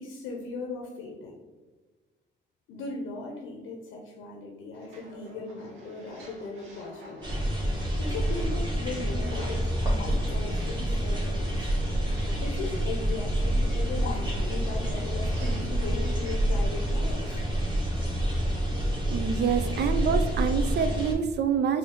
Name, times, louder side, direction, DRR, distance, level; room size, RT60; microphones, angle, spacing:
voice 1, 0.0-1.4 2.7-7.5 8.0-11.7 12.4-17.4, left 3 dB, 90° left, 1 dB, 0.7 m, -38 dB
sound 1, 4.7-17.4, right 1 dB, 85° right, 0.9 m, -50 dB
sound 2, 7.2-21.1, right 1 dB, 20° right, 1.4 m, -28 dB
sound 3, 9.9-18.2, equal, 50° left, 0.7 m, -40 dB
voice 2, 19.1-21.8, right 6 dB, 60° right, 8 dB, 0.5 m, -26 dB
4.3 x 2.7 x 3.6 m, 1.3 s
cardioid pair, 90°, 20 cm